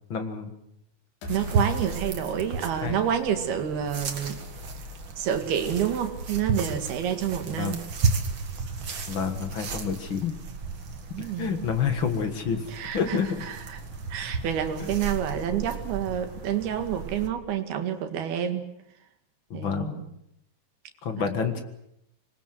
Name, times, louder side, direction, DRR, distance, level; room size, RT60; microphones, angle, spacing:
voice 1, 0.1-0.5 2.7-3.0 7.6-7.8 9.1-10.3 11.2-12.7 12.9-13.4 19.5-20.0 21.0-21.6, left 6 dB, 45° left, 7 dB, 1.7 m, -28 dB
sound 1, 1.2-4.1, left 4 dB, 65° left, 5.0 m, -43 dB
sound 2, 1.3-17.3, right 4 dB, 45° right, 2.0 m, -33 dB
voice 2, 1.3-4.4 5.2-7.8 11.1-11.7 12.7-13.8 14.1-18.7 19.5-20.0 21.2-21.3, right 9 dB, 75° right, 6 dB, 3.8 m, -29 dB
25.5 x 20.5 x 7.7 m, 0.80 s
omnidirectional pair, 4.5 m